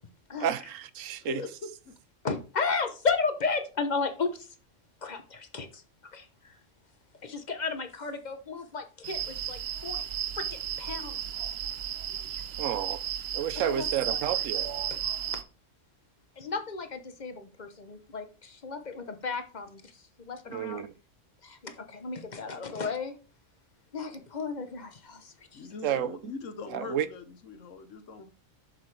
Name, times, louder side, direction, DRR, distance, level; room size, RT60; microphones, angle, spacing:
voice 1, 0.4-1.4 12.6-13.0 13.3-14.7 20.5-20.9 25.8-26.3 26.7-27.1, right 10 dB, 85° right, 1.0 m, -31 dB
voice 2, 1.2-2.0 25.5-28.3, left 4 dB, 75° left, 1.3 m, -41 dB
voice 3, 2.2-4.5 5.0-5.8 6.1-6.6 7.2-10.0 10.3-10.4 10.8-11.2 12.3-12.4 13.6-14.2 14.9-15.0 16.4-20.8 21.4-23.2 23.9-25.7, left 4 dB, 40° left, 1.0 m, -34 dB
sound 1, 9.0-15.4, right 10 dB, 65° right, 0.8 m, -34 dB
7.9 x 6.7 x 3.3 m
omnidirectional pair, 1.3 m